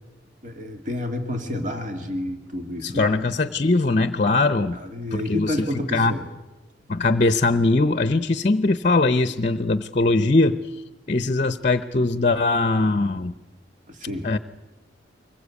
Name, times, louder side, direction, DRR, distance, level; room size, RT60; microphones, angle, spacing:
voice 1, 0.4-3.2 4.7-6.3 13.9-14.3, left 1 dB, 45° right, 4 dB, 2.3 m, -30 dB
voice 2, 2.8-4.8 5.1-5.5 5.9-6.1 6.9-10.6 11.1-13.3 14.2-14.4, left 2 dB, 40° left, 12 dB, 0.7 m, -21 dB
24.5 x 21.0 x 8.4 m, 1.1 s
head